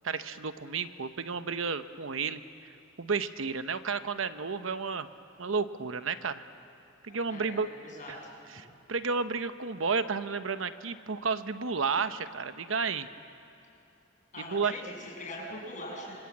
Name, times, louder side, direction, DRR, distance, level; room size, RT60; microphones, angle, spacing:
voice 1, 0.0-2.4 3.0-5.1 5.4-6.4 7.0-7.7 8.1-8.2 8.5-13.1 14.4-14.7, right 5 dB, 75° right, 11 dB, 0.9 m, -32 dB
voice 2, 7.1-8.3 14.3-16.2, left 1 dB, 40° left, -2 dB, 7.4 m, -42 dB
26.5 x 25.5 x 8.6 m, 2.7 s
head